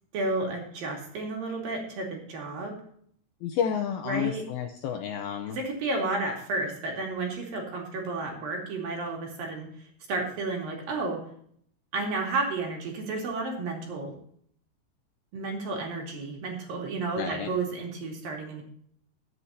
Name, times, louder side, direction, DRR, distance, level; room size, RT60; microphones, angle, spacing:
voice 1, 0.1-2.8 4.1-4.4 5.5-9.7 10.1-11.2 11.9-14.1 15.3-18.6, right 3 dB, 60° right, 0 dB, 3.9 m, -32 dB
voice 2, 3.4-5.6 17.2-17.5, left 8 dB, 75° left, 5 dB, 2.2 m, -30 dB
21.5 x 8.0 x 2.9 m, 0.65 s
omnidirectional pair, 4.9 m